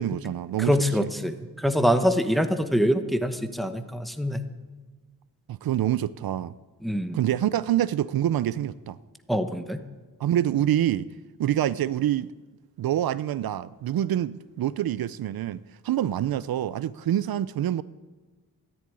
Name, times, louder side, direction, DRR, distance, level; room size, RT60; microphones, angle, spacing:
voice 1, 0.0-1.1 5.5-6.5 7.1-9.0 10.2-11.1 11.4-12.3 12.8-17.8, right 11 dB, 75° right, 17 dB, 0.5 m, -26 dB
voice 2, 0.6-4.4 6.8-7.2 9.3-9.8, equal, ahead, 8 dB, 1.0 m, -24 dB
14.0 x 10.5 x 9.7 m, 1.3 s
wide cardioid pair, 130°, 36 cm